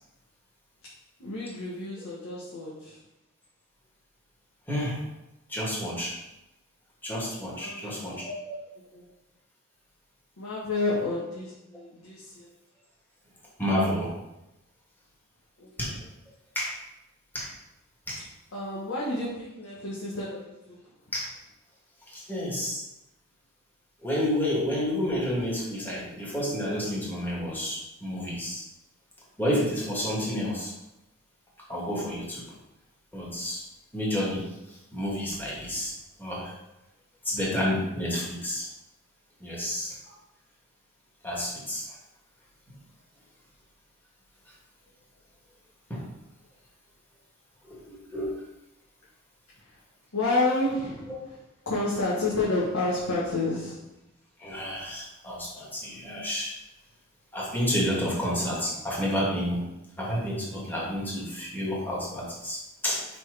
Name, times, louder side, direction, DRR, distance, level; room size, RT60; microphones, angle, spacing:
voice 1, 1.2-3.0 7.5-8.1 8.9-9.0 10.4-12.5 15.6-15.7 18.5-20.8 50.1-51.4 51.6-53.9, left 2 dB, 90° left, -7 dB, 1.5 m, -30 dB
voice 2, 4.7-5.0 5.5-6.1 7.0-8.6 13.6-14.1 15.8-15.9 16.6-16.8 17.3-17.5 18.1-18.2 21.1-21.3 22.1-22.8 24.0-28.6 29.4-30.7 31.7-32.4 33.1-33.6 33.9-34.5 34.9-35.9 36.2-36.5 37.2-38.7 39.4-39.9 41.2-41.8 45.9-46.0 47.6-48.4 54.4-56.5 57.3-59.6 60.0-63.0, equal, 10° left, -6 dB, 1.9 m, -30 dB
5.2 x 4.5 x 5.0 m, 0.91 s
head